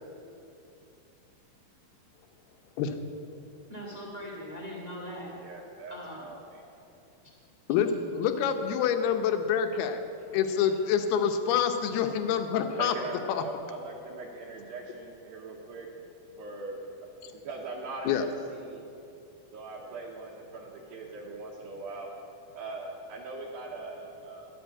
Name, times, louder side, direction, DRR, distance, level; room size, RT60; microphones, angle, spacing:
voice 1, 3.7-5.4 5.9-6.3, equal, 40° right, -3 dB, 0.6 m, -40 dB
voice 2, 5.3-6.6 10.3-10.4 12.8-15.9 16.4-16.8 17.3-18.8 19.5-22.1 22.5-24.5, right 3 dB, 75° right, -5 dB, 2.9 m, -41 dB
voice 3, 7.7-10.0 10.3-12.9 13.3-13.4 18.1-18.3, left 8 dB, 90° left, 7 dB, 2.8 m, -26 dB
11.5 x 8.0 x 8.5 m, 2.8 s
omnidirectional pair, 4.4 m